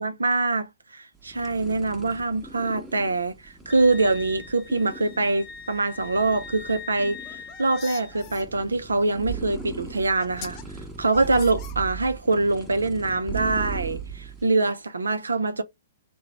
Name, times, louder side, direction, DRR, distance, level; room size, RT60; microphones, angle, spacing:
voice 1, 0.0-10.6 11.0-15.6, right 3 dB, 85° right, 0.3 m, -24 dB
Chrissie Purr Purr, 1.1-14.5, right 5 dB, 10° right, 0.8 m, -39 dB
Wind instrument woodwind instrument, 3.7-8.2, left 6 dB, 10° left, 1.1 m, -42 dB
sound 1, 7.1-8.4 9.6-9.7 10.2-10.6 11.1-12.2, left 9 dB, 35° left, 0.5 m, -43 dB
3.7 x 2.0 x 2.8 m
figure-of-eight pair, 115°, 0 cm